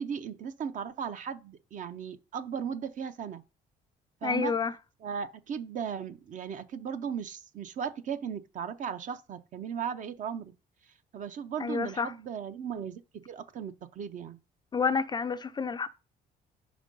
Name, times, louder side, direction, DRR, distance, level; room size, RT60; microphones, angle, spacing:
voice 1, 0.0-3.4 4.2-4.5 5.0-10.5 11.1-14.4, right 7 dB, 50° right, 0.6 m, -36 dB
voice 2, 4.2-4.7 11.6-12.1 14.7-15.9, left 5 dB, 25° left, 0.3 m, -29 dB
5.1 x 4.5 x 5.2 m
cardioid pair, 110°, 17 cm